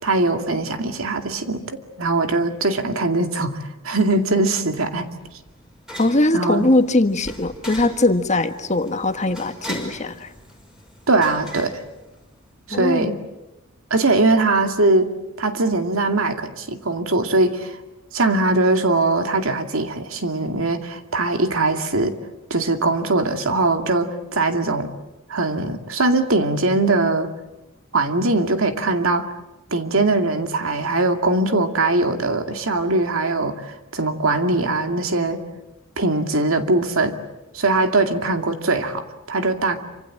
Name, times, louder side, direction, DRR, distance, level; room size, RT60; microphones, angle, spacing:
voice 1, 0.0-5.1 6.3-6.7 11.1-11.7 12.7-13.2 13.9-15.1 15.4-17.8 18.1-22.2 22.5-24.9 25.3-27.3 27.9-29.3 29.7-35.4 36.0-37.2 37.5-39.8, right 2 dB, 75° right, 6 dB, 2.3 m, -21 dB
sound 1, 4.6-12.6, equal, 5° right, 5.5 m, -40 dB
voice 2, 6.0-10.3 12.7-13.2, left 2 dB, 35° left, 8 dB, 1.4 m, -20 dB
27.5 x 25.5 x 7.7 m, 0.99 s
head